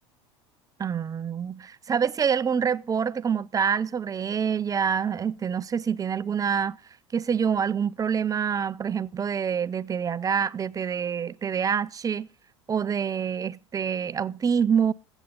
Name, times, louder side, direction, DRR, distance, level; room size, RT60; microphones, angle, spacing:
voice 1, 0.8-6.8 7.1-12.3 12.7-14.9, right 7 dB, 20° right, 0.6 m, -26 dB
21.0 x 8.1 x 3.8 m
hypercardioid pair, 85°, 15 cm